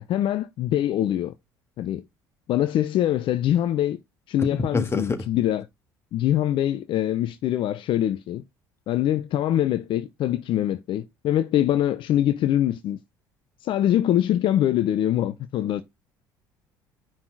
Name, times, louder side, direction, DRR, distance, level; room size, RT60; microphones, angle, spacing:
voice 1, 0.0-1.3 1.8-2.0 2.5-4.0 4.3-5.7 6.1-8.4 8.9-13.0 13.6-15.8, left 12 dB, 60° left, 0.6 m, -23 dB
voice 2, 4.4-5.2, left 3 dB, 25° left, 1.6 m, -26 dB
5.7 x 4.2 x 4.6 m
hypercardioid pair, 65°, 10 cm